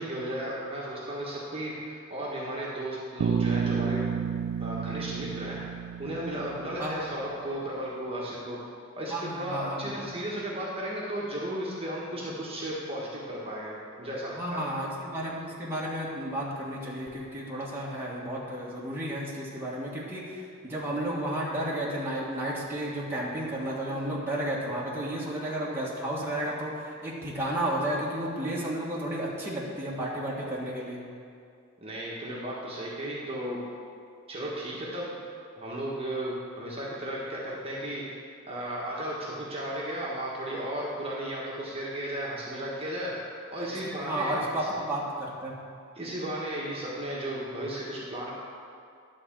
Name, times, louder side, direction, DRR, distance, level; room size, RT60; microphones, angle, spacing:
voice 1, 0.0-4.0 4.6-5.7 6.0-8.6 9.0-14.6 31.8-33.6 34.3-35.1 35.6-38.0 38.5-43.1 43.5-44.7 46.0-48.3, right 1 dB, 30° right, -5 dB, 1.4 m, -34 dB
Bass guitar, 3.2-7.2, right 7 dB, 70° right, 0.3 m, -31 dB
voice 2, 9.1-10.1 14.3-31.0 43.6-45.5, right 1 dB, 10° right, -6 dB, 1.5 m, -32 dB
11.0 x 4.3 x 7.4 m, 2.3 s
head